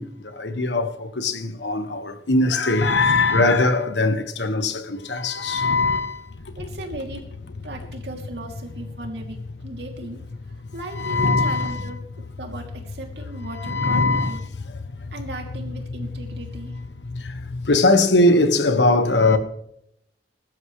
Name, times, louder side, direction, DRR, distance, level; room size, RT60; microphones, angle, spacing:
voice 1, 0.0-6.3 11.0-11.9 13.6-14.4 17.7-19.4, left 2 dB, 85° left, 1.5 m, -20 dB
sound 1, 6.2-17.8, left 3 dB, 70° left, 0.6 m, -36 dB
voice 2, 6.6-7.2 7.6-10.2 10.7-12.0 12.4-14.4 15.1-16.8, right 1 dB, 75° right, 2.8 m, -37 dB
21.5 x 12.5 x 3.2 m
head